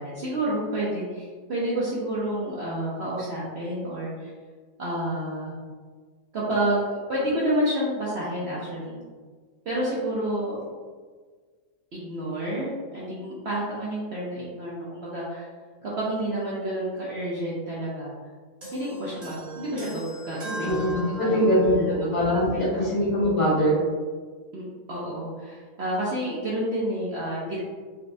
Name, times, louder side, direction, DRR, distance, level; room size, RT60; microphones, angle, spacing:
voice 1, 0.0-4.3 4.8-5.6 6.3-9.0 9.6-10.6 11.9-15.5 15.8-18.1 18.7-22.4 22.7-22.8 24.5-27.6, right 1 dB, 60° right, -7 dB, 0.7 m, -29 dB
sound 1, 18.6-21.8, equal, 30° right, 0.9 m, -39 dB
voice 2, 20.6-23.8, equal, 65° left, -8 dB, 2.0 m, -22 dB
4.0 x 2.2 x 2.6 m, 1.5 s
omnidirectional pair, 1.7 m